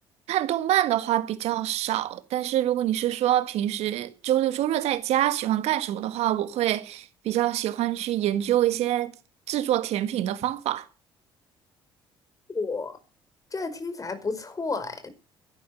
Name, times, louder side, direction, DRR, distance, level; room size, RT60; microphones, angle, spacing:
voice 1, 0.3-9.1 9.5-10.9, right 13 dB, 65° right, 1.8 m, -25 dB
voice 2, 12.5-13.0 13.5-15.1, left 4 dB, 30° left, 5.0 m, -31 dB
13.0 x 11.5 x 8.3 m
hypercardioid pair, 60°, 12 cm